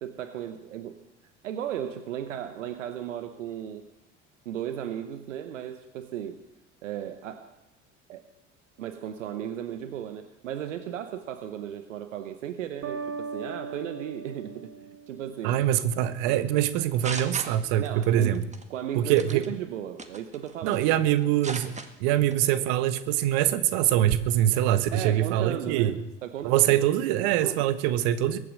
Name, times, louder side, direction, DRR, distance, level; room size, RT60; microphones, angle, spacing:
voice 1, 0.0-1.0 1.4-3.8 4.4-6.4 6.8-7.6 8.1-8.3 8.8-15.6 16.3-16.4 17.8-18.4 18.7-21.0 24.9-26.8 27.4-27.6, right 10 dB, 80° right, 10 dB, 1.0 m, -35 dB
sound 1, 12.8-15.6, right 5 dB, 40° right, 2.4 m, -38 dB
voice 2, 15.4-18.4 18.9-19.5 20.6-21.7 22.0-26.0 26.4-28.4, right 12 dB, 65° right, 13 dB, 1.3 m, -24 dB
sound 2, 16.7-18.0 18.3-18.6 19.2-19.5 20.0-20.9 21.2-21.9 22.3-22.5, right 3 dB, 20° right, 1.9 m, -37 dB
22.0 x 8.7 x 6.5 m, 0.91 s
hypercardioid pair, 65°, 37 cm